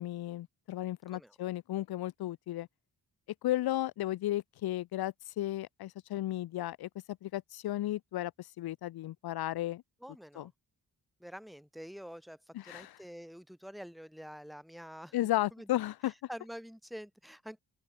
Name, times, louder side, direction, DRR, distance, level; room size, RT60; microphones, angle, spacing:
voice 1, 0.0-2.7 3.4-9.8 10.4-10.5 12.5-13.0 15.1-16.1, left 14 dB, 65° left, 0.5 m, -34 dB
voice 2, 10.0-10.5 11.2-15.7 16.3-17.6, equal, ahead, 1.4 m, -47 dB
open air
supercardioid pair, 45°, 41 cm